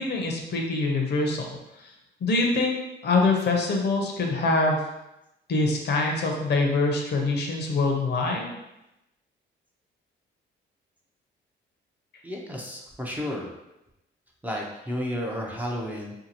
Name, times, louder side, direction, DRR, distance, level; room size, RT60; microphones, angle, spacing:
voice 1, 0.0-1.4 1.8-1.9 2.2-4.8 5.5-8.5, left 3 dB, 55° left, 1 dB, 0.7 m, -24 dB
voice 2, 12.2-13.5 14.4-16.1, equal, 10° right, -2 dB, 0.5 m, -32 dB
2.7 x 2.4 x 2.8 m, 0.91 s
cardioid pair, 90°, 20 cm